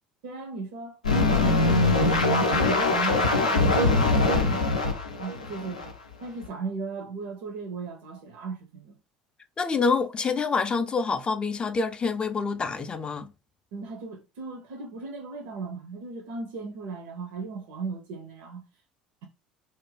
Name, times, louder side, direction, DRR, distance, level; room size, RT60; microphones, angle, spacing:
voice 1, 0.2-2.0 2.4-4.6 5.2-5.9 6.2-9.0 13.7-18.6, right 4 dB, 65° right, 0.5 m, -37 dB
sound 1, 1.0-5.9 6.4-6.5, left 2 dB, 85° left, 0.4 m, -22 dB
voice 2, 9.6-13.3, left 4 dB, 25° left, 0.3 m, -26 dB
2.4 x 2.1 x 3.2 m
figure-of-eight pair, 65°, 4 cm